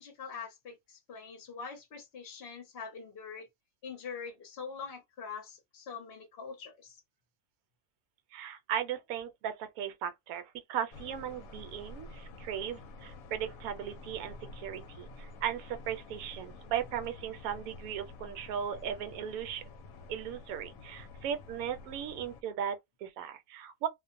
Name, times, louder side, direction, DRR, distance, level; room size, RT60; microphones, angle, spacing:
voice 1, 0.0-3.5 3.8-7.0, left 5 dB, 50° left, 0.8 m, -44 dB
voice 2, 8.3-19.6 20.1-23.9, right 9 dB, 75° right, 1.0 m, -37 dB
sound 1, 10.9-22.4, left 3 dB, 75° left, 1.0 m, -49 dB
2.5 x 2.1 x 2.6 m
omnidirectional pair, 1.6 m